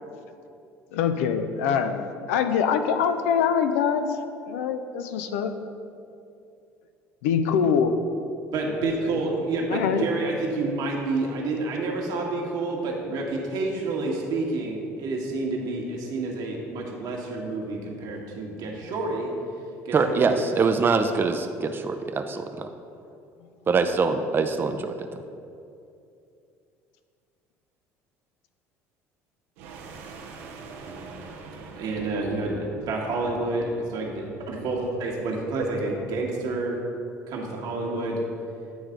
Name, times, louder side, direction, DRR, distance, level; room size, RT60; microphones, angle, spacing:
voice 1, 0.9-4.1 4.5-5.5 7.2-7.9 9.0-9.2 9.7-10.0, left 7 dB, 85° left, 8 dB, 0.4 m, -24 dB
voice 2, 8.5-19.3 19.8-20.3 30.8-31.0 31.8-36.8 37.3-38.2, right 2 dB, 65° right, -1 dB, 1.3 m, -29 dB
voice 3, 19.9-22.7 23.7-24.9, right 4 dB, 30° right, 6 dB, 0.4 m, -24 dB
Dragon Roar, 29.6-33.9, right 4 dB, 85° right, 0.7 m, -43 dB
9.2 x 3.3 x 5.0 m, 2.6 s
supercardioid pair, 75°, 7 cm